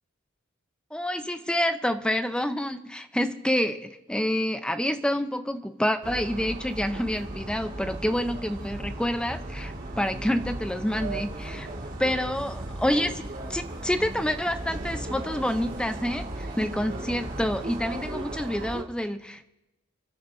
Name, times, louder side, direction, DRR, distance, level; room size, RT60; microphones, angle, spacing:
voice 1, 0.9-11.7 12.0-19.5, equal, 5° left, 9 dB, 0.6 m, -28 dB
sound 1, 6.0-18.8, right 1 dB, 45° right, 2.3 m, -36 dB
29.5 x 11.0 x 2.7 m, 0.94 s
head